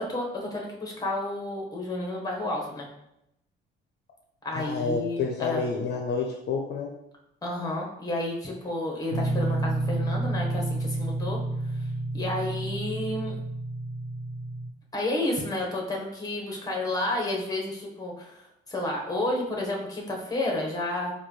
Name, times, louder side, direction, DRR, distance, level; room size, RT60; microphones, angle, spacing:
voice 1, 0.0-2.9 4.4-5.6 7.4-11.4 11.7-11.8 12.1-13.3 14.9-21.1, left 1 dB, 20° left, -1 dB, 1.1 m, -31 dB
voice 2, 4.5-6.9, left 5 dB, 60° left, 1 dB, 0.5 m, -29 dB
sound 1, 9.1-14.7, right 2 dB, 80° right, 0.6 m, -30 dB
4.5 x 2.3 x 3.0 m, 0.82 s
cardioid pair, 90°, 20 cm